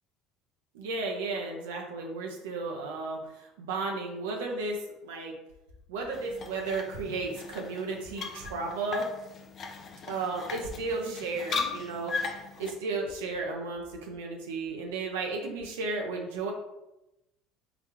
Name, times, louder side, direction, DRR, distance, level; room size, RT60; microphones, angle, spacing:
voice 1, 0.7-5.4 5.9-9.1 10.1-12.1 12.6-16.5, right 3 dB, 75° right, 1 dB, 0.6 m, -34 dB
sound 1, 6.1-12.7, left 4 dB, 45° left, 0.5 m, -38 dB
3.9 x 3.4 x 2.9 m, 0.92 s
hypercardioid pair, 70°, 0 cm